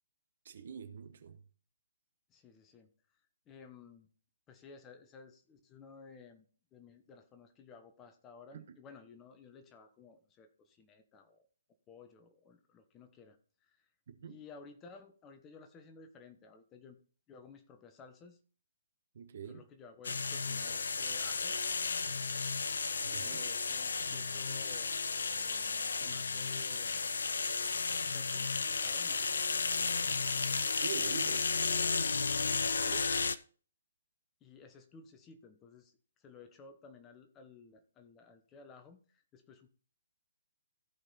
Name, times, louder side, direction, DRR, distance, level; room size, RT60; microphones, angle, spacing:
voice 1, 0.4-1.4 8.5-8.7 14.1-14.4 19.1-19.7 23.0-23.5 30.7-31.5 32.8-33.1, right 7 dB, 50° right, 1.2 m, -44 dB
voice 2, 2.3-2.9 3.5-4.1 4.5-6.5 6.7-11.5 11.9-13.9 14.2-17.0 17.3-18.4 19.4-21.6 23.0-25.0 25.3-27.0 27.9-30.1 34.4-35.9 36.2-39.7, left 5 dB, 20° left, 1.2 m, -56 dB
sound 1, 20.0-33.4, left 4 dB, 65° left, 0.6 m, -33 dB
14.5 x 5.3 x 4.1 m
figure-of-eight pair, 130°, 0 cm